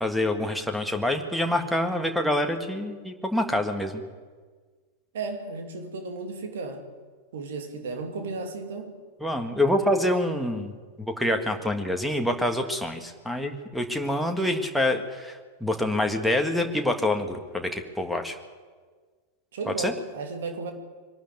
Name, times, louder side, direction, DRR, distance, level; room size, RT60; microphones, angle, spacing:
voice 1, 0.0-4.0 9.2-10.7 11.0-18.4 19.8-19.9, left 1 dB, ahead, 3 dB, 1.8 m, -26 dB
voice 2, 5.1-6.9 7.3-8.9 19.5-20.7, right 3 dB, 60° right, 4 dB, 2.7 m, -34 dB
23.0 x 12.5 x 9.4 m, 1.5 s
figure-of-eight pair, 90°, 0 cm